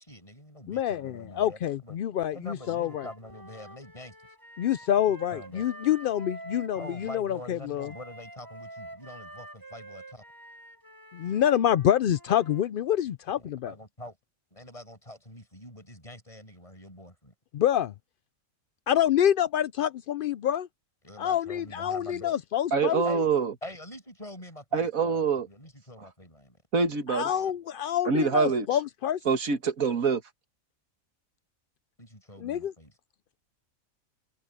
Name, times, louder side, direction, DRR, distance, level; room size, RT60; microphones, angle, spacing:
voice 1, 0.0-2.0 2.3-4.2 5.1-5.7 6.8-10.2 13.4-14.2 14.5-17.3 21.0-22.4 23.0-23.3 23.6-26.6 32.0-32.9, left 1 dB, 25° left, 6.7 m, -45 dB
voice 2, 0.7-3.1 4.6-7.9 11.1-13.7 17.5-17.9 18.9-20.7 21.2-23.0 27.1-29.2 32.4-32.7, left 10 dB, 70° left, 0.5 m, -27 dB
Wind instrument woodwind instrument, 2.6-7.2 7.8-12.6, right 1 dB, 15° right, 6.5 m, -47 dB
voice 3, 22.7-23.5 24.7-25.5 26.7-27.3 28.1-28.7 29.3-30.2, right 5 dB, 85° right, 2.0 m, -25 dB
omnidirectional pair, 1.4 m